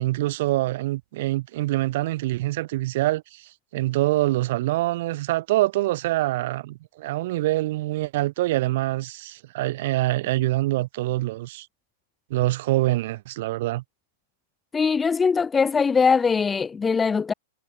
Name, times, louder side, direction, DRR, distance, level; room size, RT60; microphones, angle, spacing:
voice 1, 0.0-11.7 12.3-13.8, right 17 dB, 55° right, 4.8 m, -25 dB
voice 2, 14.7-17.3, left 5 dB, 10° left, 1.4 m, -21 dB
hypercardioid pair, 150°, 0 cm